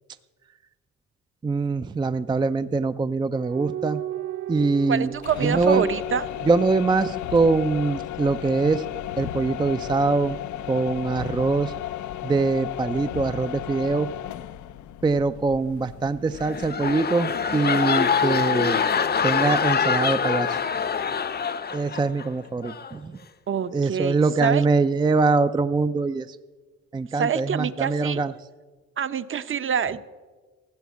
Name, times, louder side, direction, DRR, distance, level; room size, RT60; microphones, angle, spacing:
voice 1, 1.4-4.0 4.5-5.1 5.4-5.9 6.4-8.9 9.2-10.4 10.7-11.7 12.2-14.1 15.0-18.8 19.2-20.6 21.7-23.2 23.7-26.4 26.9-28.3, right 3 dB, 15° right, 11 dB, 0.4 m, -23 dB
sound 1, 3.4-7.0 8.5-12.2 13.0-14.3, right 9 dB, 75° right, 1.6 m, -39 dB
voice 2, 4.9-6.2 23.5-24.1 24.4-24.6 27.2-28.2 29.0-30.0, right 7 dB, 45° right, 13 dB, 0.8 m, -26 dB
sound 2, 5.1-17.0, left 13 dB, 75° left, 0.6 m, -34 dB
sound 3, 16.3-22.3 22.6-22.9, left 6 dB, 35° left, 0.7 m, -24 dB
15.0 x 7.0 x 8.2 m, 1.4 s
cardioid pair, 90°, 30 cm